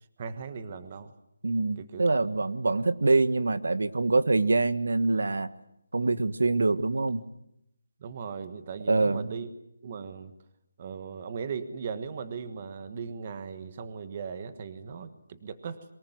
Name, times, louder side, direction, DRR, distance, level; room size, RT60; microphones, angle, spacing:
voice 1, 0.2-1.1 1.8-2.1 8.0-9.5 9.8-10.3 10.8-15.8, right 6 dB, 25° right, 11 dB, 1.3 m, -38 dB
voice 2, 1.4-5.5 5.9-7.2 8.9-9.3, right 3 dB, 80° right, 13 dB, 1.5 m, -25 dB
23.5 x 20.5 x 9.3 m, 0.80 s
hypercardioid pair, 175°, 0 cm